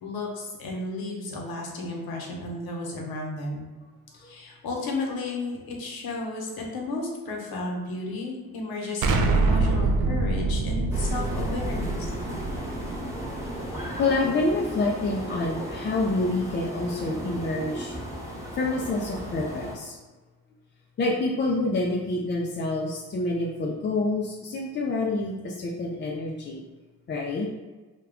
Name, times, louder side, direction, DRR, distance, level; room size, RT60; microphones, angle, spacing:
voice 1, 0.0-3.7 4.1-12.1, left 2 dB, 60° left, -1 dB, 0.9 m, -33 dB
Explosion, 9.0-13.8, right 3 dB, 50° right, 0.4 m, -25 dB
sound 1, 10.9-19.7, equal, 5° right, 1.0 m, -35 dB
voice 2, 13.9-18.0 18.5-20.0 21.0-26.6 27.1-27.5, left 2 dB, 30° left, -2 dB, 0.4 m, -27 dB
2.2 x 2.1 x 3.5 m, 1.3 s
supercardioid pair, 60°, 41 cm